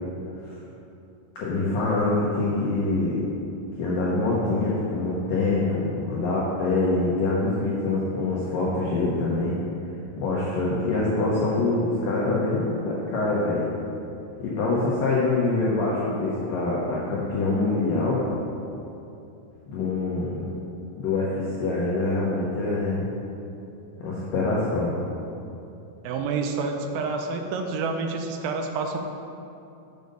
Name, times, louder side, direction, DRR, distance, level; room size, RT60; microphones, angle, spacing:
voice 1, 1.4-3.2 3.8-9.6 10.2-13.7 14.4-18.2 19.7-20.5 21.0-23.1 24.0-24.9, left 2 dB, 90° left, -6 dB, 1.9 m, -25 dB
voice 2, 26.0-29.0, right 4 dB, 85° right, 4 dB, 3.1 m, -28 dB
7.7 x 5.3 x 6.6 m, 2.8 s
omnidirectional pair, 5.5 m